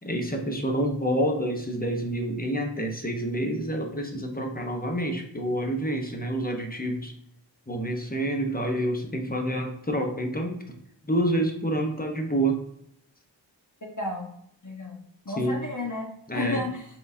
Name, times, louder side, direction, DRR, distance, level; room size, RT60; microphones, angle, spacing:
voice 1, 0.0-7.1 7.7-10.6 11.0-12.6 15.4-15.6 16.3-16.6, right 1 dB, 20° left, 3 dB, 0.9 m, -28 dB
voice 2, 14.0-14.3 14.6-16.9, left 2 dB, 40° left, -1 dB, 1.2 m, -32 dB
4.5 x 3.8 x 2.7 m, 0.71 s
wide cardioid pair, 40°, 47 cm